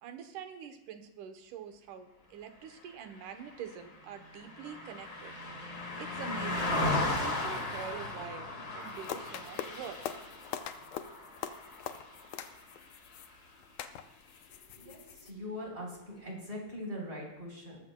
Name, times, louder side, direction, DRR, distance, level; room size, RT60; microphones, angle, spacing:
voice 1, 0.0-5.4 6.0-10.0, right 8 dB, 90° right, 7 dB, 2.5 m, -45 dB
Car passing by, 3.2-12.7 13.1-13.3, left 2 dB, 35° left, 2.0 m, -36 dB
sound 1, 8.8-15.3, left 10 dB, 75° left, 1.8 m, -44 dB
voice 2, 14.7-17.8, left 1 dB, 20° right, -1 dB, 3.9 m, -42 dB
20.0 x 14.5 x 2.3 m, 0.90 s
omnidirectional pair, 3.5 m